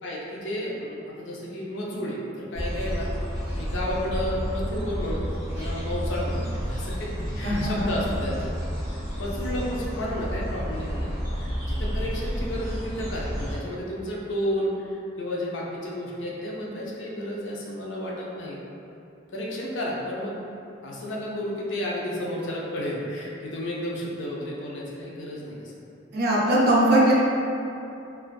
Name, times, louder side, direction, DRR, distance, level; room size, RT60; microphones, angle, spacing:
voice 1, 0.0-3.1 3.5-8.5 9.2-18.6 19.3-20.4 20.8-25.7, equal, 65° left, -4 dB, 0.4 m, -32 dB
sound 1, 2.5-13.5, equal, 20° right, 1.1 m, -30 dB
voice 2, 7.4-7.9 26.1-27.1, right 1 dB, 50° right, -5 dB, 0.4 m, -20 dB
2.5 x 2.3 x 2.2 m, 2.7 s
head